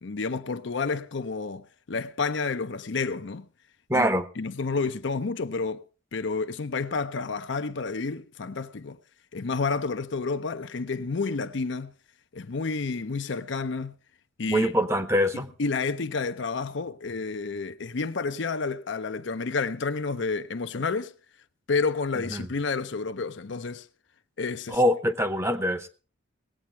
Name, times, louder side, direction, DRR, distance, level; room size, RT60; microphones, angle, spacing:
voice 1, 0.0-3.5 3.9-4.1 4.4-5.8 6.1-9.0 9.3-11.9 12.3-13.9 14.4-14.7 15.6-21.1 21.7-23.9 24.4-24.8, left 4 dB, 60° left, 0.6 m, -30 dB
voice 2, 3.9-4.3 14.5-15.5 22.3-22.5 24.7-25.9, equal, 15° right, 0.8 m, -24 dB
19.0 x 8.6 x 4.4 m
head